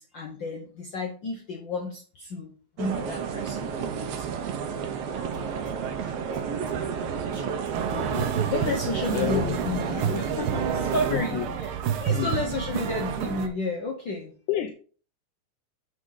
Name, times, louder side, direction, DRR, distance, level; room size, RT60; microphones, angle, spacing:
voice 1, 0.0-2.5 2.8-4.3 8.5-14.3, left 2 dB, 70° left, 1.1 m, -32 dB
sound 1, 2.8-11.1, right 7 dB, 65° right, 1.7 m, -31 dB
Drum kit, 5.3-10.7, right 3 dB, 40° right, 1.6 m, -46 dB
sound 2, 7.7-13.5, right 8 dB, 90° right, 1.1 m, -30 dB
voice 2, 7.9-8.4 9.1-9.4 11.1-11.5 12.1-12.3 14.5-14.7, left 12 dB, 85° left, 2.2 m, -29 dB
7.5 x 6.4 x 3.8 m
omnidirectional pair, 3.5 m